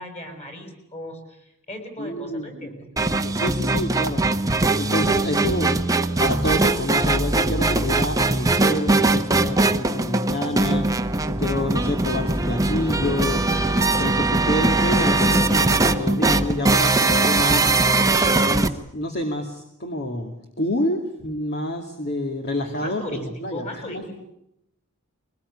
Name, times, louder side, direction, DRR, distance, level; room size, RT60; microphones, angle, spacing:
voice 1, 0.0-2.9 22.8-24.1, left 1 dB, 30° left, 6 dB, 6.7 m, -37 dB
voice 2, 2.0-2.5 3.2-4.3 4.8-13.7 14.0-17.7 18.3-23.0 23.4-24.0, left 1 dB, 50° left, 4 dB, 2.5 m, -28 dB
sound 1, 3.0-18.7, right 2 dB, 15° right, 1.1 m, -21 dB
23.0 x 19.5 x 9.9 m, 0.80 s
head